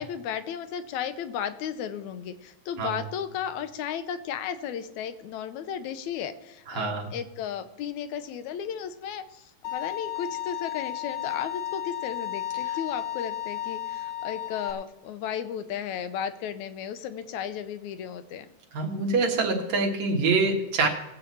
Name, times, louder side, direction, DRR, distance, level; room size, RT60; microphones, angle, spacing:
voice 1, 0.0-18.5, left 8 dB, 80° left, 11 dB, 2.1 m, -34 dB
voice 2, 6.7-7.1 12.7-12.8 18.7-20.9, right 3 dB, 70° right, 0 dB, 2.9 m, -25 dB
Bowed string instrument, 9.6-14.7, left 12 dB, 45° left, 1.5 m, -33 dB
20.0 x 7.9 x 4.2 m, 0.97 s
omnidirectional pair, 3.4 m